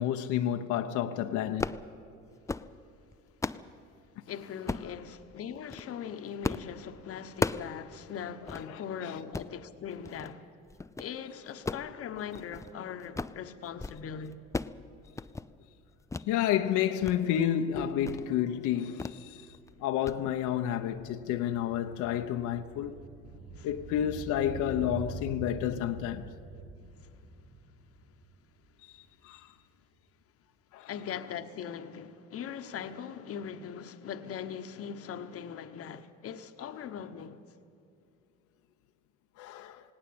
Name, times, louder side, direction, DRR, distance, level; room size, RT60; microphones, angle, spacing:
voice 1, 0.0-1.8 8.7-8.8 16.3-19.4 19.8-22.9 23.6-26.3 29.2-29.4 30.7-30.9 39.4-39.8, left 10 dB, 80° left, 1.0 m, -30 dB
sound 1, 1.5-1.9 2.3-2.7 3.1-3.7 4.7-4.9 5.6-5.9 6.4-6.7 7.0-7.7 8.1-8.2 8.5-8.7 9.2-9.5 10.0-10.3 10.7-11.1 11.5-12.7 13.0-13.4 13.7-14.0 14.3-14.8 15.1-15.5 16.1-16.3 16.7-17.2 17.5-17.6 18.0-18.3 19.0-19.2 19.5-19.7 20.1-20.2, left 3 dB, 10° left, 0.5 m, -35 dB
voice 2, 4.3-10.5 11.0-14.4 23.5-23.7 27.0-27.1 30.9-37.4, left 8 dB, 50° left, 1.1 m, -40 dB
sound 2, 19.6-29.0 29.3-29.4, right 3 dB, 55° right, 1.8 m, -45 dB
19.0 x 17.5 x 8.7 m
cardioid pair, 110°, 29 cm